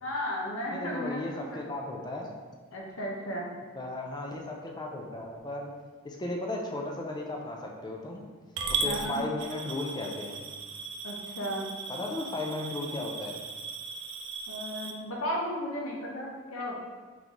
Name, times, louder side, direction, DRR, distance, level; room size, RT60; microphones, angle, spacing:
voice 1, 0.0-1.6 2.7-3.5 8.8-9.2 11.0-11.7 14.5-16.8, equal, 80° left, -3 dB, 0.8 m, -34 dB
voice 2, 0.7-2.3 3.7-5.7 6.0-8.3 8.7-10.5 11.9-13.4, left 2 dB, 20° left, 0 dB, 0.5 m, -35 dB
Coin (dropping) / Glass, 8.6-14.9, right 4 dB, 55° right, 0.4 m, -37 dB
3.8 x 3.6 x 3.0 m, 1.4 s
head